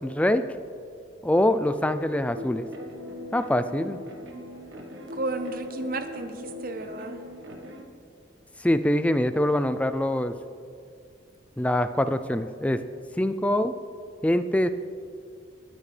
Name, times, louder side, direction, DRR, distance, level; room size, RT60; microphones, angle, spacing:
voice 1, 0.0-0.4 1.2-2.7 3.3-4.0 8.6-10.4 11.6-12.8 13.2-13.7 14.2-14.7, left 1 dB, 5° left, 11 dB, 0.3 m, -24 dB
sound 1, 2.4-7.8, left 1 dB, 75° right, 1.4 m, -40 dB
voice 2, 5.1-7.2, right 2 dB, 45° right, 8 dB, 0.8 m, -33 dB
21.0 x 9.6 x 3.3 m, 2.3 s
head